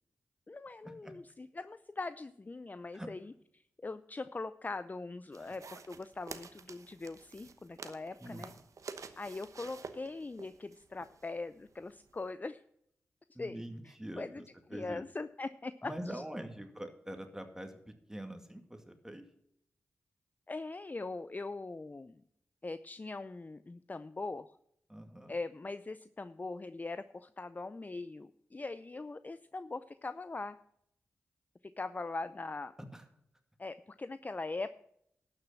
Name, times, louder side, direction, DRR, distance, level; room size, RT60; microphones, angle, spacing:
voice 1, 0.5-3.3 3.8-8.5 9.2-12.6 13.4-14.4 14.7-16.2 20.5-22.2 22.6-24.5 25.3-30.6 31.6-32.7 33.6-34.7, left 3 dB, 30° left, 13 dB, 0.5 m, -41 dB
sound 1, 5.3-12.3, right 5 dB, 75° right, 1.0 m, -50 dB
voice 2, 8.2-8.6 13.3-14.5 14.7-15.0 15.8-19.2 24.9-25.3 32.9-33.0, right 1 dB, 10° right, 6 dB, 2.2 m, -44 dB
12.0 x 6.5 x 7.3 m, 0.73 s
cardioid pair, 45°, 6 cm